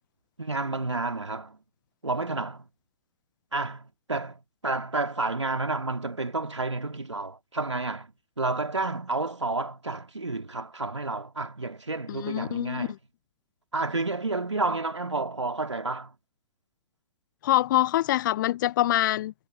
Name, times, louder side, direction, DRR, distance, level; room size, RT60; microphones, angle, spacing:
voice 1, 0.4-1.6 2.0-2.6 3.5-8.1 8.4-12.9 13.7-16.1, right 3 dB, 85° right, 2.7 m, -30 dB
voice 2, 12.1-13.0 17.4-19.3, left 14 dB, 45° left, 0.9 m, -25 dB
figure-of-eight pair, 120°, 15 cm